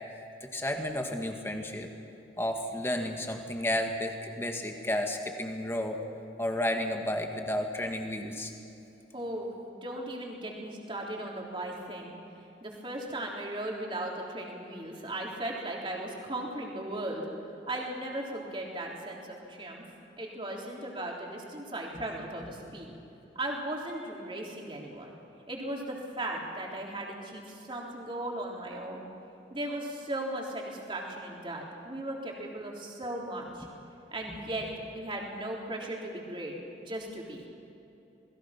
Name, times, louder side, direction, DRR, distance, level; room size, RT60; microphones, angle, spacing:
voice 1, 0.4-1.9 2.4-6.0 6.4-8.5 21.9-22.0 34.3-34.4, left 1 dB, 15° left, 3 dB, 1.9 m, -32 dB
voice 2, 9.1-12.2 12.6-17.3 17.7-19.8 20.2-22.9 23.4-25.1 25.5-29.1 29.5-33.7 34.1-36.5 36.8-37.5, right 1 dB, 25° right, -2 dB, 3.6 m, -37 dB
28.0 x 21.0 x 6.0 m, 3.0 s
head